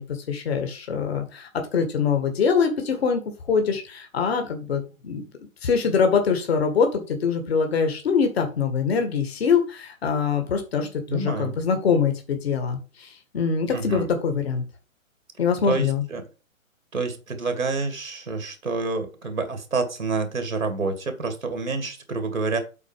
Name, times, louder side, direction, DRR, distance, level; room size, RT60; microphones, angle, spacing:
voice 1, 0.0-3.2 3.5-5.2 5.6-14.6 15.4-16.0, left 6 dB, 50° left, 6 dB, 2.0 m, -24 dB
voice 2, 11.1-11.5 13.7-14.1 15.6-16.2 16.9-22.6, right 3 dB, 75° right, 7 dB, 2.3 m, -28 dB
8.4 x 4.7 x 5.0 m, 0.32 s
figure-of-eight pair, 130°, 40 cm